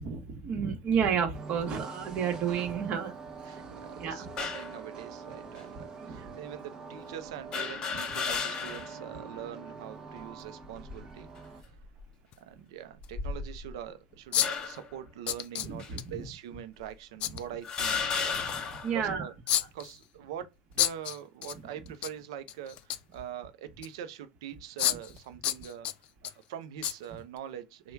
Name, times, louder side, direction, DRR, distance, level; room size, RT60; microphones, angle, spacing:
voice 1, 0.0-3.1 4.0-4.3 5.9-6.4 15.7-16.0 18.3-19.3, right 7 dB, 45° right, 1.1 m, -31 dB
sound 1, 1.3-11.6, right 4 dB, 30° right, 0.7 m, -45 dB
voice 2, 3.4-11.3 12.4-19.3 19.7-20.5 20.8-25.9 26.2-27.9, right 10 dB, 75° right, 0.5 m, -43 dB
sound 2, 4.4-4.8 5.6-5.7 7.5-9.0 9.4-9.5 10.6-11.1 11.8-12.0 13.0-13.8 14.4-14.9 15.8-15.9 16.8-16.9 17.6-19.0, left 5 dB, 35° left, 1.0 m, -34 dB
sound 3, 10.4-10.5 12.3-12.4 13.0-13.1 14.3-14.7 15.3-16.0 17.2-17.4 19.5-20.0 20.8-21.6 21.9-22.1 22.5-23.1 23.8-23.9 24.8-25.2 25.4-26.3 26.8-27.0 27.4-27.5, left 12 dB, 50° left, 0.3 m, -30 dB
3.1 x 2.2 x 3.3 m
hypercardioid pair, 105°, 3 cm